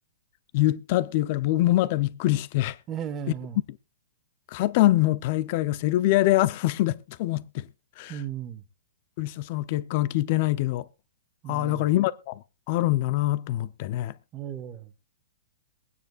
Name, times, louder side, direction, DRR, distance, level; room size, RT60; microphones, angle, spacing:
voice 1, 0.5-2.8 4.5-7.7 8.0-8.2 9.2-10.9 11.5-14.1, left 16 dB, 40° left, 0.7 m, -24 dB
voice 2, 2.9-3.6 8.1-8.6 11.4-11.9 14.3-14.9, right 9 dB, 20° right, 1.3 m, -35 dB
23.0 x 9.4 x 2.4 m
hypercardioid pair, 160°, 0 cm